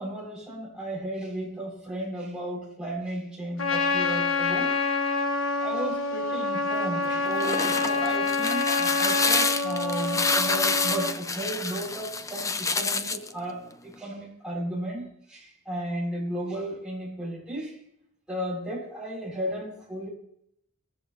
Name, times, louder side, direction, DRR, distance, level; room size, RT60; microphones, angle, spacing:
voice 1, 0.0-4.8 5.6-17.8 18.3-20.1, right 1 dB, 5° right, -5 dB, 7.5 m, -34 dB
Trumpet, 3.6-11.2, left 3 dB, 85° left, 1.3 m, -27 dB
sound 1, 7.2-13.3, left 4 dB, 15° left, 0.6 m, -28 dB
20.5 x 15.0 x 3.0 m, 0.72 s
head